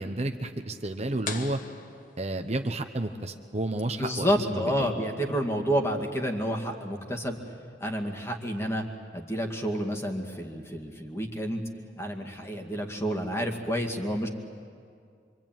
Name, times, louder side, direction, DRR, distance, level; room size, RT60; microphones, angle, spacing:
voice 1, 0.0-1.6 2.2-4.9, right 2 dB, 35° right, 6 dB, 1.0 m, -31 dB
sound 1, 1.2-2.9, left 4 dB, 50° left, 1.4 m, -40 dB
voice 2, 4.0-7.4 7.8-8.8 9.1-11.6 12.0-14.3, equal, 15° left, 2 dB, 2.2 m, -29 dB
25.5 x 25.0 x 9.1 m, 2.3 s
head